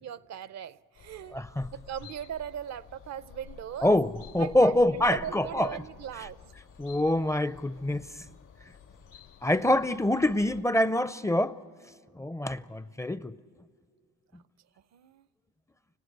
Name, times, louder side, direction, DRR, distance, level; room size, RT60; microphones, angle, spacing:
voice 1, 0.0-1.4 1.7-3.9 4.4-6.4 14.9-15.3, right 9 dB, 60° right, 0.6 m, -39 dB
sound 1, 0.9-10.6, left 8 dB, 90° left, 2.8 m, -51 dB
voice 2, 1.3-1.7 3.8-5.8 6.8-8.0 9.4-11.6 12.2-13.4, left 1 dB, 10° left, 0.5 m, -25 dB
29.5 x 16.0 x 8.0 m
cardioid pair, 90°, 30 cm